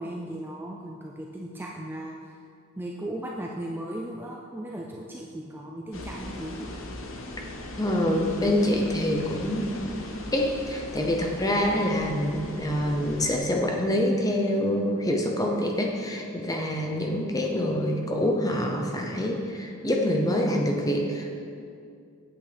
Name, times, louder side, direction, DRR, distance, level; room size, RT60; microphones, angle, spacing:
voice 1, 0.0-2.3 2.8-6.7, right 1 dB, 10° right, -1 dB, 0.3 m, -36 dB
sound 1, 5.9-13.4, left 1 dB, 65° left, 0.9 m, -39 dB
voice 2, 7.8-21.3, left 1 dB, 15° left, 1 dB, 0.7 m, -26 dB
8.4 x 7.9 x 3.4 m, 2.4 s
head